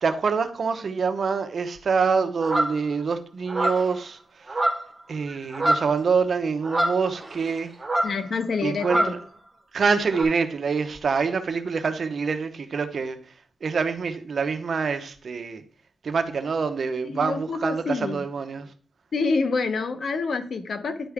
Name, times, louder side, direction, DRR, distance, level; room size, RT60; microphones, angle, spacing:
voice 1, 0.0-4.6 5.1-7.7 8.6-9.2 9.7-13.2 13.6-15.6 16.0-18.7, right 5 dB, 55° right, 0.8 m, -26 dB
sound 1, 2.4-2.8 3.5-3.9 4.5-5.0 5.3-6.0 6.6-7.5 7.8-8.2 8.8-9.2 10.1-10.2, right 1 dB, 20° right, 1.7 m, -25 dB
voice 2, 8.0-9.1 17.0-18.2 19.1-21.1, left 4 dB, 60° left, 0.8 m, -27 dB
10.0 x 4.6 x 3.5 m
wide cardioid pair, 125°, 0 cm